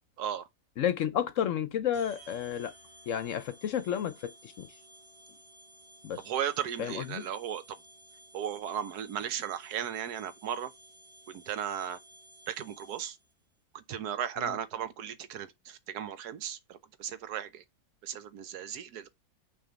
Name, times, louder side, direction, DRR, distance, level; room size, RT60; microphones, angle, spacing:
voice 1, 0.8-2.7 3.1-4.7 6.0-6.2 6.8-7.3 14.4-14.6, left 9 dB, 65° left, 0.9 m, -31 dB
sound 1, 1.9-13.3, right 1 dB, 25° right, 2.8 m, -55 dB
voice 2, 6.2-7.8 8.3-10.7 11.3-12.0 12.5-13.2 13.7-17.6 18.0-19.1, right 9 dB, 85° right, 1.3 m, -36 dB
6.1 x 3.5 x 5.1 m
omnidirectional pair, 1.6 m